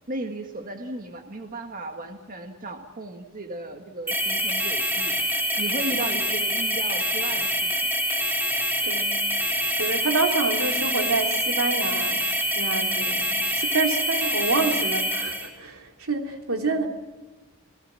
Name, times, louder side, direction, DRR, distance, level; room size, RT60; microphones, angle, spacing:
voice 1, 0.1-5.2 5.6-7.7, right 2 dB, 40° right, 4 dB, 1.7 m, -35 dB
sound 1, 4.1-15.5, equal, 10° right, 3.7 m, -25 dB
voice 2, 8.8-9.2 9.7-12.2 12.6-16.9, right 3 dB, 80° right, 3 dB, 3.0 m, -27 dB
29.0 x 19.0 x 7.6 m, 1.2 s
head